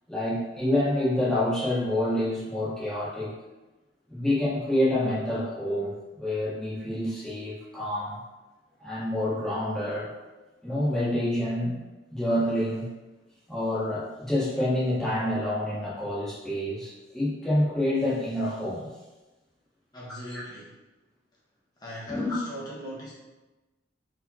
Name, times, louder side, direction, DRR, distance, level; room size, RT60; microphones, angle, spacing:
voice 1, 0.1-3.3 4.1-8.2 8.8-10.1 10.6-11.8 12.1-12.9 13.5-18.9 20.3-20.4 22.1-22.4, left 1 dB, 5° left, -9 dB, 1.2 m, -27 dB
voice 2, 19.9-20.8 21.8-23.1, equal, 20° left, -5 dB, 1.0 m, -39 dB
4.6 x 3.3 x 2.8 m, 1.1 s
head